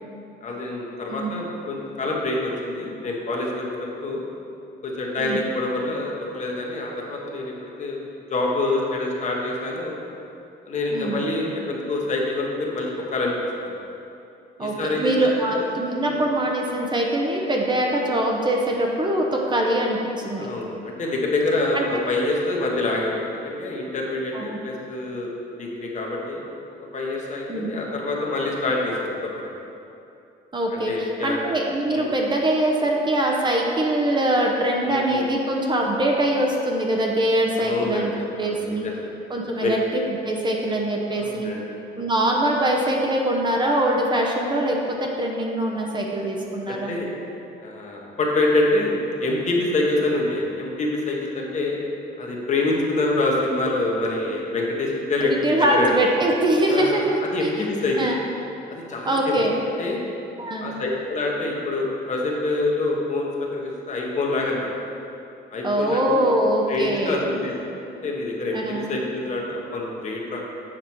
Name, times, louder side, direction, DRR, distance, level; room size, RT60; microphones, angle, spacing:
voice 1, 0.4-4.2 4.8-8.0 8.3-9.9 10.7-13.7 14.6-15.7 16.0-16.2 20.4-25.3 25.6-26.5 26.9-29.5 30.7-31.4 31.9-32.1 34.8-35.3 37.5-39.0 39.6-39.7 41.1-41.6 46.7-47.1 47.6-51.8 52.2-55.9 56.7-58.1 58.7-59.4 59.8-60.0 60.6-64.7 65.5-66.3 66.7-67.6 68.0-70.4, left 2 dB, 40° left, -1 dB, 1.2 m, -26 dB
voice 2, 1.1-1.4 5.2-5.4 10.9-11.3 14.6-20.5 21.7-21.8 24.3-24.6 27.5-27.8 30.5-38.1 38.4-38.9 39.3-39.8 40.2-41.5 42.0-46.9 55.2-57.5 58.0-58.2 59.1-59.6 60.4-60.7 65.6-67.3 68.5-69.0, right 1 dB, 25° right, 0 dB, 0.8 m, -23 dB
7.6 x 4.9 x 4.5 m, 2.7 s
cardioid pair, 115°, 19 cm